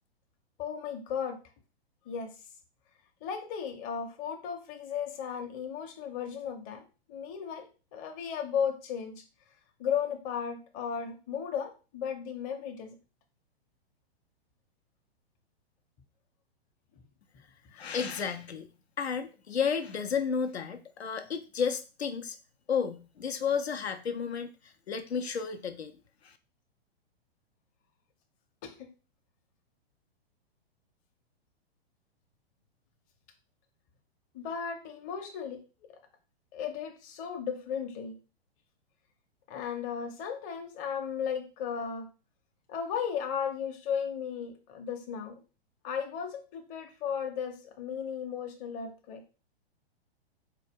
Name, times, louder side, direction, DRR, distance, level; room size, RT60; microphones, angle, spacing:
voice 1, 0.6-1.4 2.1-2.3 3.2-6.8 7.1-9.1 9.8-12.9 17.0-17.1 17.7-17.9 28.6-28.9 34.3-35.6 36.5-38.1 39.5-42.1 42.7-45.4 45.8-49.2, left 7 dB, 25° left, 5 dB, 0.6 m, -35 dB
voice 2, 17.8-18.7 19.0-22.4 22.7-26.0 26.2-26.4, left 6 dB, 80° left, 8 dB, 0.5 m, -32 dB
4.1 x 2.2 x 3.4 m, 0.34 s
figure-of-eight pair, 110°, 32 cm